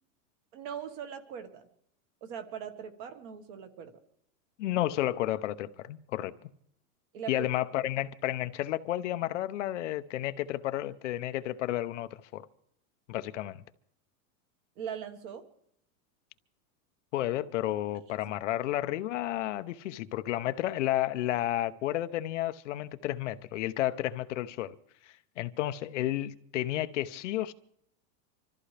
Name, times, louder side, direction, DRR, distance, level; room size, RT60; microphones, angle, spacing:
voice 1, 0.5-1.7 2.2-3.9 7.1-7.5 14.8-15.4, right 8 dB, 35° right, 1.5 m, -40 dB
voice 2, 4.6-6.3 7.3-12.5 13.1-13.6 17.1-24.8 25.0-27.5, left 14 dB, 55° left, 0.7 m, -32 dB
25.5 x 14.0 x 3.3 m
supercardioid pair, 175°, 45 cm